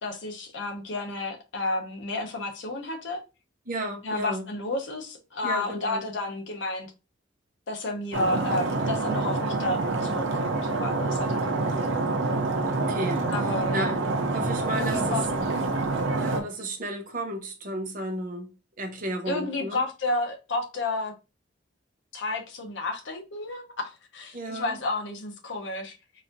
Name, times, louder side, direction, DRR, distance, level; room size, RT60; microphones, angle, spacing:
voice 1, 0.0-3.2 4.0-6.9 7.7-11.7 13.3-13.9 14.8-15.7 19.3-21.1 22.1-26.0, left 2 dB, 70° left, 0.8 m, -31 dB
voice 2, 3.7-4.5 5.4-6.0 12.7-15.2 16.1-18.5 18.8-19.8 24.3-24.7, right 1 dB, 45° right, 0.8 m, -33 dB
Stream, 8.1-16.4, right 3 dB, 75° right, 0.7 m, -27 dB
4.1 x 2.5 x 2.6 m
head